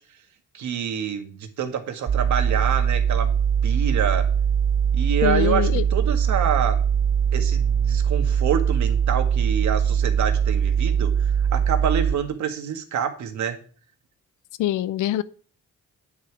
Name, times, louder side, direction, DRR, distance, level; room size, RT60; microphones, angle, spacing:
voice 1, 0.5-3.3 3.6-4.3 4.9-6.8 7.3-13.6, right 8 dB, 70° right, 1.8 m, -27 dB
sound 1, 2.1-12.2, right 8 dB, 45° right, 0.7 m, -21 dB
voice 2, 5.2-5.8 14.6-15.2, left 14 dB, 85° left, 0.6 m, -23 dB
9.1 x 4.9 x 7.3 m
cardioid pair, 90°, 30 cm